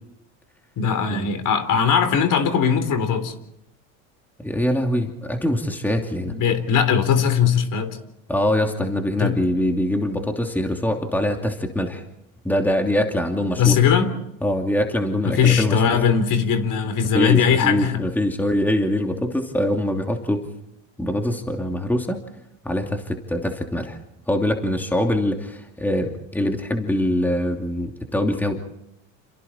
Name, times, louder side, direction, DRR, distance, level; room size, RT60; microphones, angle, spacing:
voice 1, 0.8-3.3 6.2-8.0 9.2-9.4 13.6-14.1 15.2-17.9, left 7 dB, 50° left, 9 dB, 3.8 m, -19 dB
voice 2, 4.4-6.3 8.3-12.0 12.4-13.8 14.4-16.0 17.1-20.5 21.0-22.2 22.6-24.0 24.3-28.5, left 1 dB, 5° left, 3 dB, 2.7 m, -23 dB
29.5 x 28.0 x 4.4 m, 0.80 s
supercardioid pair, 100°, 40 cm